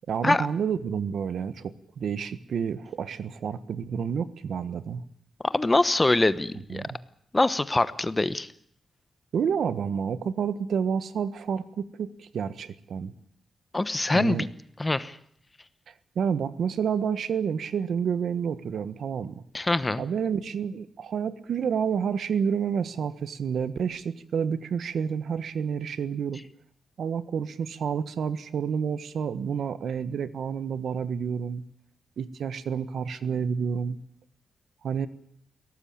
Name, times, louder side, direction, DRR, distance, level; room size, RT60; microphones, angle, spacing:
voice 1, 0.1-5.0 6.7-7.0 9.3-13.1 14.1-14.5 15.9-19.4 20.0-26.4 27.0-31.6 32.2-34.0 34.8-35.1, right 7 dB, 75° right, 14 dB, 1.3 m, -29 dB
voice 2, 5.4-6.8 7.3-8.5 13.7-14.5 14.8-15.2 19.5-20.0, left 2 dB, 15° left, 15 dB, 1.0 m, -24 dB
22.0 x 18.0 x 8.7 m, 0.67 s
wide cardioid pair, 135°, 0 cm